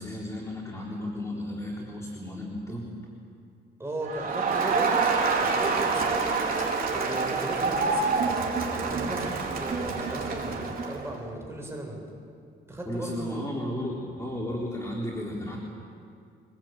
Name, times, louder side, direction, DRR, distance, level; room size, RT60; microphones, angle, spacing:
voice 1, 0.0-2.9 12.9-15.6, left 1 dB, 15° left, -3 dB, 3.8 m, -34 dB
voice 2, 3.8-5.0 5.4-6.4 6.8-8.2 8.9-12.0 12.7-13.4, right 1 dB, 15° right, 0 dB, 7.2 m, -36 dB
Crowd, 4.1-11.1, right 4 dB, 45° right, 4.3 m, -27 dB
24.0 x 20.5 x 9.0 m, 2.3 s
cardioid pair, 90°, 20 cm